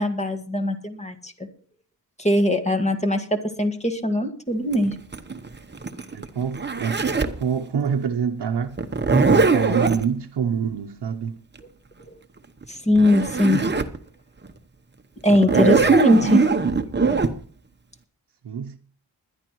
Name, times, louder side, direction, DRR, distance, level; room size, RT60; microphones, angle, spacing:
voice 1, 0.0-1.5 2.2-5.0 12.1-12.2 12.7-13.6 15.2-16.5, left 1 dB, 15° left, 1.7 m, -21 dB
Zipper (clothing), 4.7-7.4 8.8-10.0 12.6-12.7 13.0-14.0 14.4-14.5 15.3-17.3, right 4 dB, 25° right, 0.9 m, -21 dB
voice 2, 6.1-8.8 9.3-11.4 15.4-16.0 18.4-18.8, right 7 dB, 80° right, 0.8 m, -27 dB
21.0 x 10.5 x 3.1 m
wide cardioid pair, 95°, 40 cm